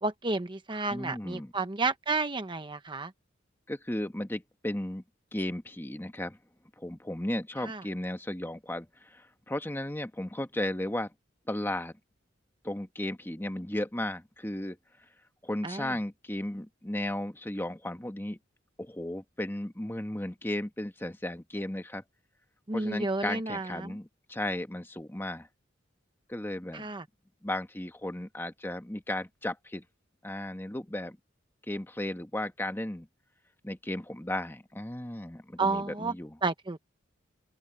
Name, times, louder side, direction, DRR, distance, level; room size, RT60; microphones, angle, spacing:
voice 1, 0.0-3.1 7.6-7.8 15.6-15.9 22.7-24.0 26.7-27.0 35.6-36.1 36.4-36.8, right 3 dB, 25° right, 0.9 m, -31 dB
voice 2, 0.9-1.5 3.7-5.0 5.3-6.4 6.8-11.1 11.5-11.9 12.6-14.8 15.4-18.4 18.8-22.0 22.7-25.5 26.3-26.9 27.4-29.8 30.2-31.2 31.7-33.1 33.6-36.4, left 1 dB, 10° left, 1.4 m, -35 dB
open air
head